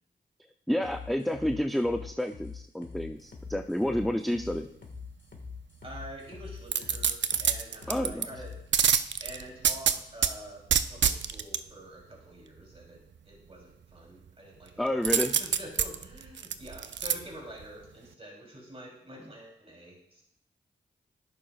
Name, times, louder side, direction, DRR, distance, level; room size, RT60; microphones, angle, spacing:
voice 1, 0.7-4.7 7.9-8.3 14.8-15.3, left 1 dB, ahead, 6 dB, 0.6 m, -29 dB
sound 1, 0.8-8.6, left 5 dB, 70° left, 1.8 m, -44 dB
voice 2, 5.8-8.6 9.2-20.2, right 1 dB, 30° right, -3 dB, 3.3 m, -47 dB
sound 2, 6.7-8.3 8.7-10.3 10.7-11.6 15.0-17.1 17.6-17.7, right 8 dB, 70° right, 0.5 m, -26 dB
11.0 x 8.6 x 2.4 m, 0.74 s
cardioid pair, 40°, 19 cm